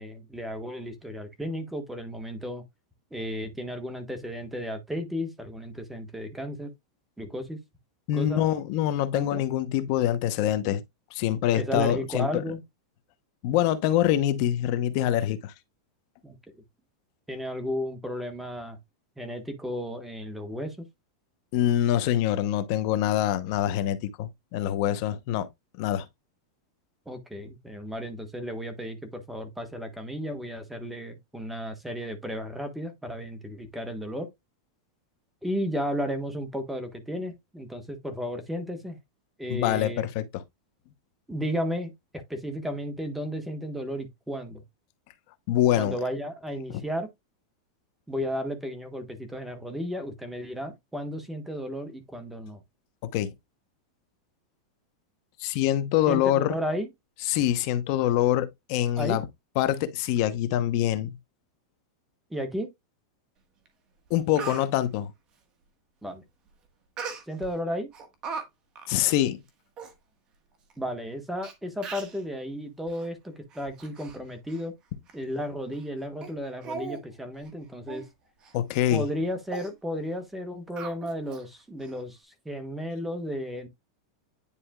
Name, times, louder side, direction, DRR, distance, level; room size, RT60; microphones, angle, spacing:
voice 1, 0.0-2.6 3.1-6.7 7.2-7.6 8.1-8.4 9.1-9.4 11.6-12.6 16.2-16.4 17.3-18.8 19.2-20.9 27.1-34.3 35.4-39.0 39.4-40.1 41.3-41.9 42.3-44.6 45.8-47.1 48.1-52.6 56.1-56.9 59.0-59.2 62.3-62.7 66.0-66.2 67.3-67.9 70.8-74.7 75.1-78.0 78.9-83.7, equal, 5° right, 1.2 m, -33 dB
voice 2, 8.1-10.8 11.1-12.4 13.4-15.5 21.5-25.5 25.8-26.1 39.5-40.4 45.5-45.9 46.7-46.8 53.0-53.3 55.4-56.5 57.3-59.3 59.6-61.2 64.1-65.1 68.9-69.4 78.5-79.0, left 12 dB, 50° left, 0.8 m, -25 dB
Speech, 63.6-63.7 64.1-64.7 67.0-67.5 67.9-68.4 68.7-68.9 69.5-69.6 69.8-69.9 70.7-70.8 71.4-71.5 71.8-72.2 72.9-73.1 73.5-74.2 74.5-74.6 75.1-75.2 75.7-75.9 76.2-76.3 76.6-77.0 77.3-77.5 77.9-78.1 78.4-78.5 78.9-79.1 79.5-79.7 80.8-81.4 81.8-81.9, right 5 dB, 30° right, 1.4 m, -38 dB
9.9 x 4.2 x 2.3 m
supercardioid pair, 150°, 3 cm